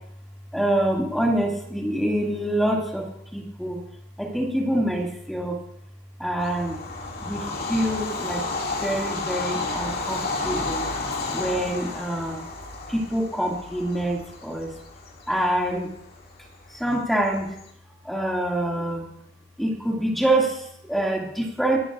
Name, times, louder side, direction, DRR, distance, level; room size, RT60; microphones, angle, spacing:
voice 1, 0.5-3.8 4.2-5.6 6.2-6.8 7.2-8.4 8.8-10.8 11.3-12.4 12.9-14.7 15.3-15.9 16.8-17.5 18.0-19.1 19.6-21.8, right 1 dB, ahead, -2 dB, 2.1 m, -26 dB
Bird vocalization bird call bird song / Train, 6.4-17.6, left 3 dB, 60° left, 2.2 m, -32 dB
24.0 x 11.0 x 2.4 m, 0.72 s
head